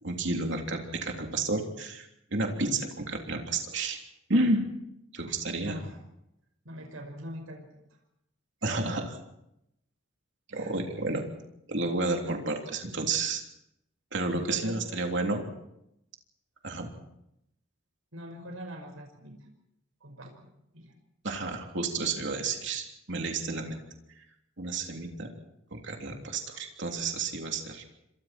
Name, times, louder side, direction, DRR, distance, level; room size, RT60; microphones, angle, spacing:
voice 1, 0.0-4.0 4.3-4.6 5.1-5.8 8.6-9.0 10.5-11.2 11.7-13.4 14.1-15.5 16.6-16.9 21.2-23.8 24.6-25.3 25.7-27.8, right 2 dB, 60° right, 2 dB, 3.5 m, -31 dB
voice 2, 5.6-6.0 6.6-7.8 8.7-8.9 10.5-10.7 11.0-11.3 12.2-12.4 14.3-14.8 18.1-19.3 20.0-20.5 20.7-20.9, equal, 85° right, 3 dB, 5.6 m, -42 dB
28.5 x 25.5 x 4.5 m, 0.83 s
head